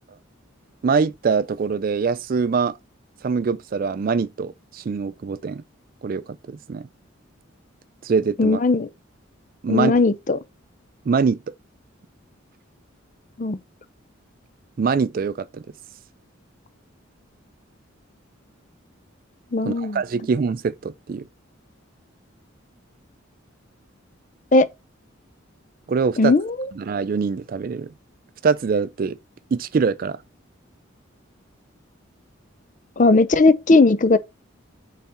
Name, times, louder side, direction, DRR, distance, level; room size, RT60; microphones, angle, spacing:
voice 1, 0.8-2.7 3.2-5.6 6.0-6.9 8.0-8.6 9.6-9.9 11.1-11.4 14.8-15.6 19.6-21.3 25.9-26.3 26.7-27.9 28.4-29.2 29.5-30.2, right 5 dB, 45° right, 0.3 m, -23 dB
voice 2, 8.4-8.9 9.7-10.4 13.4-13.6 19.5-20.0 24.5-24.7 26.2-26.6 33.0-34.2, left 3 dB, 40° left, 0.5 m, -17 dB
5.7 x 4.1 x 4.2 m
head